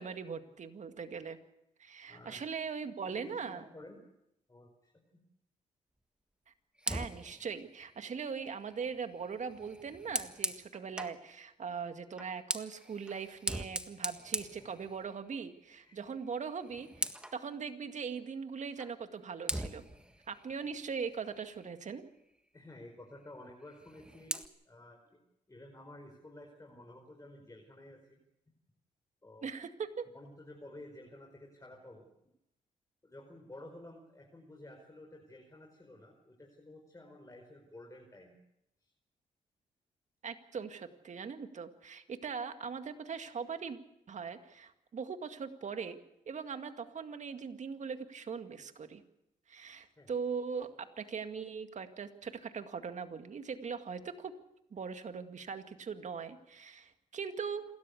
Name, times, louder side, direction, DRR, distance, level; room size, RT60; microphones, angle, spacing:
voice 1, 0.0-1.4 1.8-3.6 6.9-19.8 20.3-22.0 29.4-30.1 40.2-43.8 44.1-46.0 46.3-49.0 49.5-54.3 54.7-57.6, right 6 dB, 55° right, 8 dB, 2.0 m, -40 dB
voice 2, 2.1-2.4 3.1-4.0 4.5-5.2 15.8-16.0 22.5-25.2 25.5-28.2 29.2-29.5 30.1-32.1 33.0-38.4 38.8-38.9 50.0-50.1, left 1 dB, 20° left, 1 dB, 5.2 m, -52 dB
Fire, 6.8-11.2 12.1-15.4 15.7-16.0 16.3-17.4 18.8-18.9 19.5-21.8 23.7-24.5, right 1 dB, 5° right, 1.7 m, -41 dB
28.0 x 13.5 x 8.4 m, 0.84 s
supercardioid pair, 55°, 15 cm